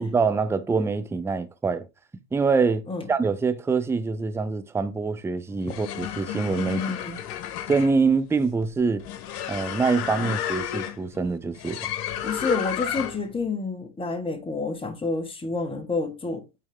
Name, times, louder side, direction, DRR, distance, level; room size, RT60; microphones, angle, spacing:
voice 1, 0.0-1.9 2.3-2.8 3.1-6.8 7.7-9.0 9.5-11.8, right 4 dB, 5° right, 0.5 m, -24 dB
sound 1, 5.5-13.4, left 10 dB, 65° left, 1.2 m, -32 dB
voice 2, 6.7-7.2 12.2-16.4, left 3 dB, 10° left, 1.4 m, -29 dB
8.9 x 4.2 x 3.6 m
hypercardioid pair, 85°, 48 cm